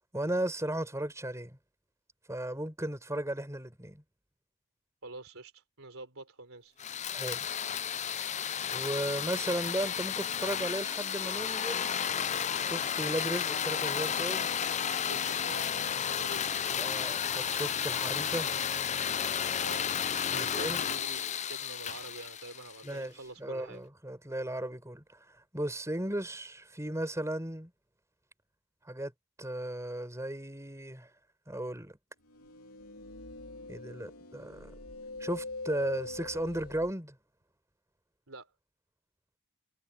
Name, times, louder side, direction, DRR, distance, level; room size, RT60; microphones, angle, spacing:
voice 1, 0.1-1.6 2.3-4.0 7.1-7.5 8.7-11.9 12.6-14.5 16.8-18.5 20.3-20.8 22.8-23.1 23.4-25.2 25.5-27.7 28.8-29.1 29.4-31.1 31.5-32.0 33.7-34.7 35.2-37.2, right 1 dB, 15° right, 5.3 m, -35 dB
voice 2, 5.0-6.8 15.0-16.8 19.6-19.9 20.3-23.8 38.3-38.5, right 2 dB, 65° right, 4.1 m, -47 dB
sound 1, 6.8-23.0, left 8 dB, 30° left, 0.5 m, -32 dB
sound 2, 32.3-36.9, left 2 dB, 80° left, 2.9 m, -43 dB
head